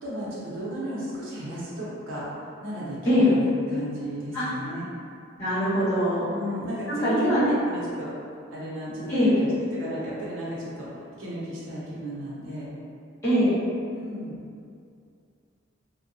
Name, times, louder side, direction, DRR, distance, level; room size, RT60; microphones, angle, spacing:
voice 1, 0.0-4.8 6.3-8.1 8.5-9.3 9.7-12.7 13.9-14.4, right 1 dB, 75° right, -8 dB, 0.7 m, -33 dB
voice 2, 5.4-6.3 6.9-7.4 9.1-9.4 13.2-13.6, left 1 dB, 15° left, -16 dB, 1.2 m, -22 dB
2.7 x 2.2 x 2.6 m, 2.4 s
head